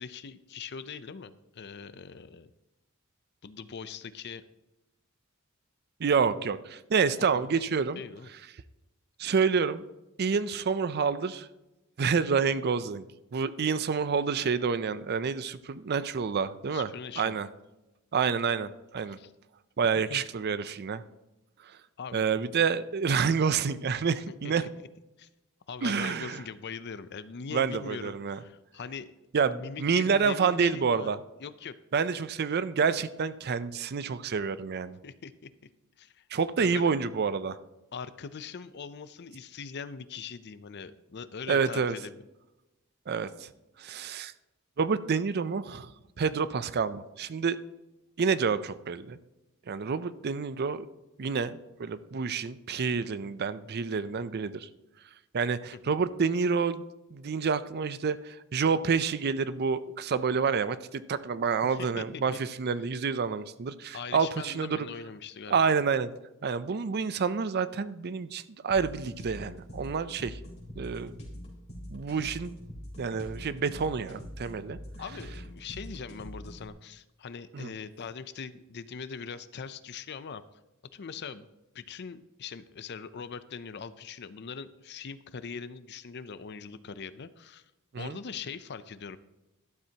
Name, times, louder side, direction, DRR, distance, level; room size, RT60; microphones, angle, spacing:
voice 1, 0.0-2.5 3.4-4.4 6.3-6.5 7.2-7.7 8.0-8.3 16.7-17.4 19.1-19.3 20.1-20.2 22.0-22.2 24.3-24.7 25.2-25.3 25.7-29.1 29.4-31.1 31.4-31.7 35.0-35.5 36.0-36.3 36.6-36.9 37.9-42.2 55.8-56.0 61.6-62.2 63.9-65.6 75.0-80.4 80.9-81.5 81.7-87.6 88.0-89.2, left 6 dB, 55° left, 14 dB, 0.5 m, -41 dB
voice 2, 6.0-8.0 9.2-9.8 10.2-11.5 12.0-13.1 13.3-16.9 17.2-17.5 18.1-19.2 19.8-21.0 21.6-21.8 22.1-24.6 25.8-26.4 27.5-28.4 29.3-31.2 31.9-35.0 36.3-37.6 41.5-42.0 43.1-43.5 43.8-44.3 44.8-45.9 46.2-47.6 48.2-49.2 49.7-50.9 51.2-54.7 55.3-64.9 65.5-66.1 66.4-70.4 70.8-71.1 71.9-72.6 73.0-74.8 77.5-77.7 87.9-88.2, right 5 dB, 50° right, 14 dB, 0.5 m, -28 dB
sound 1, 68.7-76.7, equal, 30° left, 3.4 m, -44 dB
12.0 x 12.0 x 2.9 m, 0.99 s
head